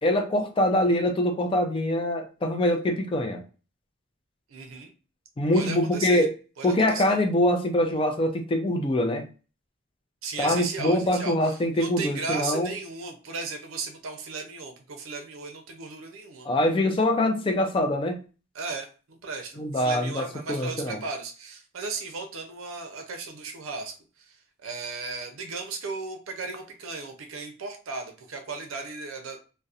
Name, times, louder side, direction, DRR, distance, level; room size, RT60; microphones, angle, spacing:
voice 1, 0.0-3.4 5.4-6.3 6.6-9.3 10.4-12.7 16.4-18.2 19.6-21.0, left 1 dB, 25° left, 4 dB, 0.4 m, -24 dB
voice 2, 4.5-4.9 5.5-6.3 6.6-7.2 10.2-16.5 18.5-29.4, right 4 dB, 85° right, 4 dB, 0.5 m, -36 dB
2.7 x 2.1 x 2.4 m, 0.35 s
head